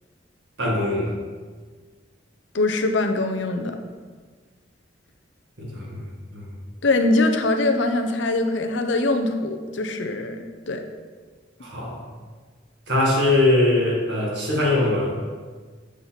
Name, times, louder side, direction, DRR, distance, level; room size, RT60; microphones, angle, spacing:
voice 1, 0.6-1.2 5.6-6.1 6.3-6.5 11.6-12.0 12.9-15.2, left 2 dB, 65° right, -3 dB, 2.0 m, -21 dB
voice 2, 2.5-3.8 6.8-10.4 10.7-10.8, left 2 dB, 75° left, 6 dB, 0.7 m, -22 dB
7.4 x 5.7 x 4.0 m, 1.5 s
head